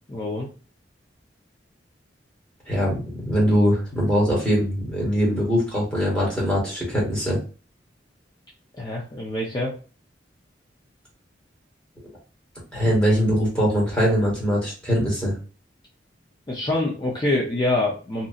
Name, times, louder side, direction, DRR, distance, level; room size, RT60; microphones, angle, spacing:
voice 1, 0.1-0.5 8.8-9.7 16.5-18.3, left 2 dB, 25° left, -4 dB, 0.5 m, -25 dB
voice 2, 2.7-7.4 12.7-15.3, equal, 5° left, -5 dB, 1.4 m, -22 dB
2.7 x 2.6 x 2.4 m, 0.36 s
head